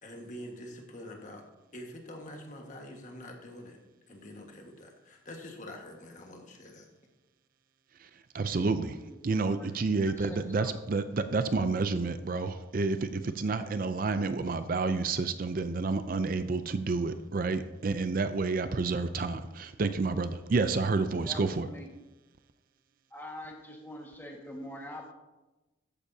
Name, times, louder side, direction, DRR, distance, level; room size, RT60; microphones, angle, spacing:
voice 1, 0.0-1.4 1.7-3.8 4.1-6.9, left 1 dB, 40° left, 1 dB, 1.6 m, -45 dB
voice 2, 8.3-9.0 9.2-21.7, right 3 dB, 45° right, 10 dB, 0.4 m, -29 dB
voice 3, 9.4-10.7 21.3-21.9 23.1-25.1, left 1 dB, 10° left, 0 dB, 1.6 m, -45 dB
13.5 x 9.9 x 2.8 m, 1.1 s
head